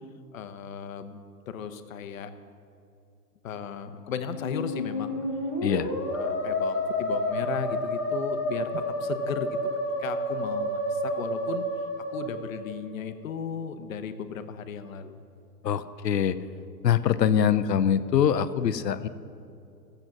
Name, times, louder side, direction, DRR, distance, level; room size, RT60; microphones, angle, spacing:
voice 1, 0.3-1.2 1.5-2.3 3.4-5.2 5.6-8.7 9.0-9.6 10.0-11.6 12.1-15.2, left 7 dB, 55° left, 9 dB, 0.9 m, -36 dB
Musical instrument, 4.3-13.0, left 1 dB, 15° left, 0.3 m, -30 dB
voice 2, 15.6-16.4 16.8-19.1, left 8 dB, 85° left, 13 dB, 0.7 m, -23 dB
13.5 x 7.9 x 6.0 m, 2.6 s
hypercardioid pair, 140°, 48 cm